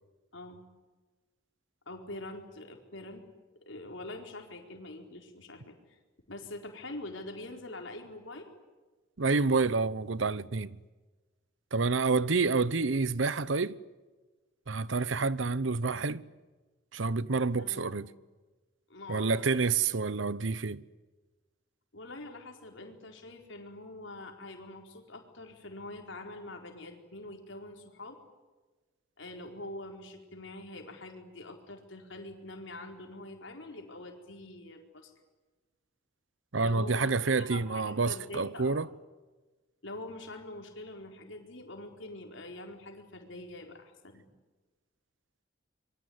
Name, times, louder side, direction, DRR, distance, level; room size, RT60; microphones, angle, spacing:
voice 1, 1.9-3.2 3.7-5.8 6.3-8.5 17.6-18.1 18.9-19.6 21.9-28.2 29.2-35.1 36.6-37.1 37.4-38.8 39.8-44.3, left 2 dB, 80° left, 4.5 m, -44 dB
voice 2, 9.2-10.8 11.7-13.8 14.7-16.2 16.9-18.1 19.1-20.8 36.5-38.9, right 4 dB, 85° right, 0.9 m, -28 dB
26.0 x 23.5 x 9.6 m
head